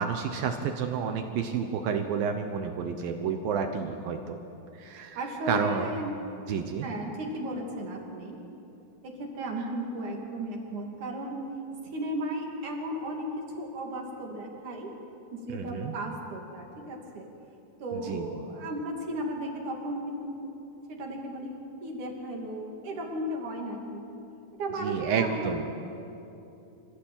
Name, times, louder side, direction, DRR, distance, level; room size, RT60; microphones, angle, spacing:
voice 1, 0.0-4.4 4.7-5.2 5.5-6.0 6.5-6.9 15.5-15.9 17.9-18.3 24.8-25.7, right 6 dB, 75° right, 5 dB, 2.7 m, -30 dB
voice 2, 5.1-6.1 6.8-8.4 9.0-11.4 11.8-14.9 15.3-17.3 17.8-20.5 20.9-24.1 24.6-25.7, right 1 dB, 55° right, 0 dB, 4.1 m, -35 dB
26.5 x 15.5 x 9.0 m, 2.8 s
omnidirectional pair, 4.4 m